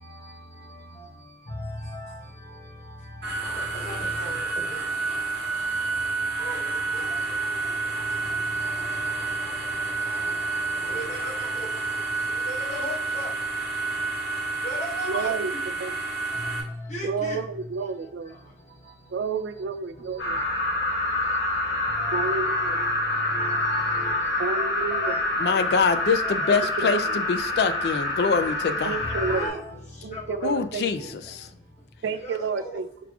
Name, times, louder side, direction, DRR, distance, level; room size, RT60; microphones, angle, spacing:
sound 1, 3.2-16.6, right 3 dB, 60° right, 1.0 m, -29 dB
voice 1, 3.8-4.4 6.4-6.6 6.9-7.0 10.8-11.3 11.6-11.7 12.5-13.3 14.6-15.3 16.9-17.4 23.3-24.2 25.0-25.2 29.3-29.7 30.1-30.2 32.4-32.8, equal, 40° left, 1.0 m, -35 dB
voice 2, 15.0-15.5 15.8-15.9 17.0-18.4 19.1-20.4 22.1-22.8 24.4-25.2 26.5-27.0 28.8-29.6 30.0-31.1 32.0-32.8, right 5 dB, 90° right, 0.3 m, -30 dB
sound 2, 20.2-29.5, left 2 dB, 85° left, 1.1 m, -26 dB
voice 3, 25.4-29.0 30.4-31.5, left 5 dB, 65° left, 0.4 m, -25 dB
4.8 x 3.6 x 2.3 m
head